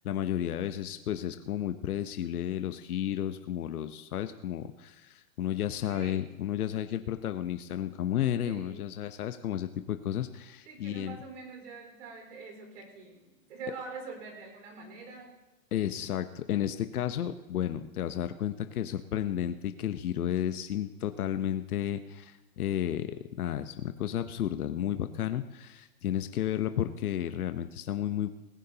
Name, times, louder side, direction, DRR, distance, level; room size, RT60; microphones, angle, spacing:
voice 1, 0.0-11.2 15.7-28.3, left 11 dB, 80° left, 9 dB, 1.0 m, -32 dB
voice 2, 5.9-6.3 8.4-8.9 10.6-15.4, right 4 dB, 60° right, 3 dB, 4.7 m, -44 dB
20.0 x 16.5 x 2.9 m, 1.1 s
hypercardioid pair, 160°, 43 cm